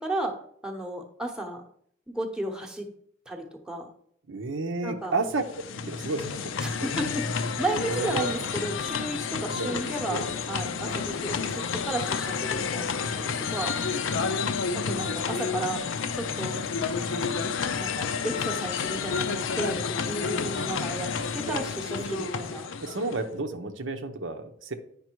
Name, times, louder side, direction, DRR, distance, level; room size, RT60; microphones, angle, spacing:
voice 1, 0.0-0.3 0.6-1.6 2.1-2.9 3.3-3.9 4.8-5.1 6.6-13.7 14.7-15.8 16.1-16.6 17.1-17.3 17.8-22.7, right 1 dB, 5° right, 0 dB, 0.9 m, -33 dB
voice 2, 4.3-5.4 5.9-6.9 7.9-8.4 9.5-9.8 10.1-10.3 10.9-11.0 14.3-14.5 21.5-21.6 22.1-22.3 22.8-24.7, right 3 dB, 65° right, 6 dB, 0.8 m, -32 dB
sound 1, 5.2-23.3, left 5 dB, 70° left, 0.5 m, -30 dB
9.4 x 5.3 x 4.5 m, 0.66 s
head